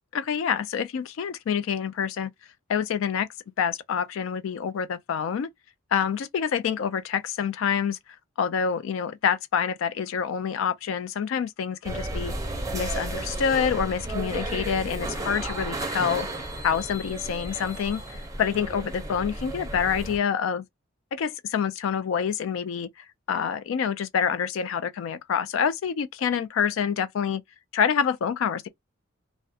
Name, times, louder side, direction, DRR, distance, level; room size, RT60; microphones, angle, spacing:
voice 1, 0.1-2.3 2.7-3.3 3.6-5.5 5.9-8.0 8.4-12.4 12.7-16.3 16.6-20.6 21.1-27.4 27.7-28.7, left 7 dB, 80° left, 0.3 m, -27 dB
sound 1, 11.8-20.2, right 1 dB, 15° right, 0.5 m, -33 dB
2.3 x 2.1 x 2.7 m
head